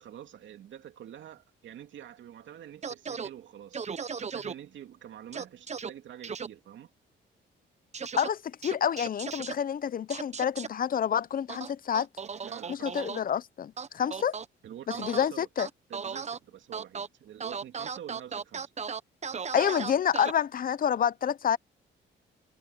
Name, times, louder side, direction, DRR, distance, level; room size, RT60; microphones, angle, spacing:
voice 1, 0.0-6.9 12.4-13.0 14.6-15.5 15.9-18.7, right 10 dB, 70° right, 2.7 m, -47 dB
sound 1, 2.8-3.3 3.7-4.5 5.3-5.9 6.2-6.5 7.9-8.3 8.6-9.5 10.1-10.7 11.5-13.2 13.8-14.5 14.9-15.2 15.6-16.4 16.7-17.1 17.4-20.3, right 6 dB, 35° right, 1.0 m, -36 dB
voice 2, 8.2-12.1 12.7-14.4 15.0-15.7 19.5-21.6, left 8 dB, 45° left, 0.7 m, -28 dB
cardioid pair, 90°, 20 cm